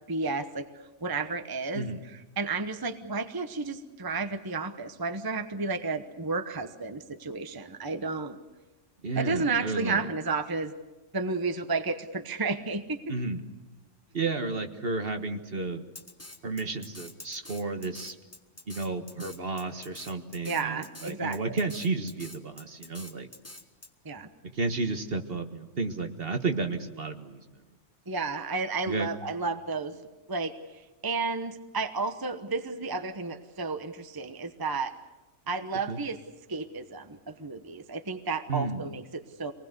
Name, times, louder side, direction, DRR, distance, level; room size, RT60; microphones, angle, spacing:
voice 1, 0.1-8.4 9.2-10.7 11.1-13.0 20.4-21.6 24.0-24.3 28.1-29.9 30.3-34.9 35.5-36.2 36.5-39.5, right 4 dB, 20° right, 9 dB, 1.0 m, -32 dB
voice 2, 9.0-10.1 13.1-13.4 14.1-15.8 16.4-18.1 18.7-23.3 24.5-27.4 28.9-29.1 35.9-36.0 38.5-38.9, right 3 dB, 50° right, 6 dB, 1.7 m, -32 dB
Drum kit, 16.0-23.9, left 1 dB, 10° left, 1.4 m, -46 dB
26.0 x 20.0 x 8.1 m, 1.1 s
omnidirectional pair, 1.3 m